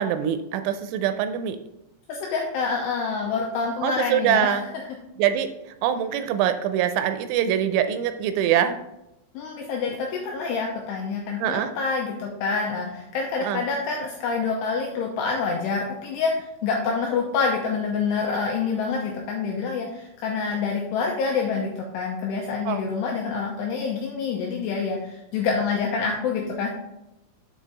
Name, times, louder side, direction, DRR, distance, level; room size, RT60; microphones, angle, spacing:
voice 1, 0.0-1.6 3.8-4.6 5.2-5.5 5.8-8.8 11.4-11.7 13.4-13.6 22.7-22.8, right 9 dB, 85° right, 9 dB, 2.9 m, -23 dB
voice 2, 2.1-4.5 9.3-26.7, left 5 dB, 90° left, 0 dB, 2.4 m, -27 dB
7.4 x 4.6 x 3.9 m, 0.87 s
omnidirectional pair, 5.6 m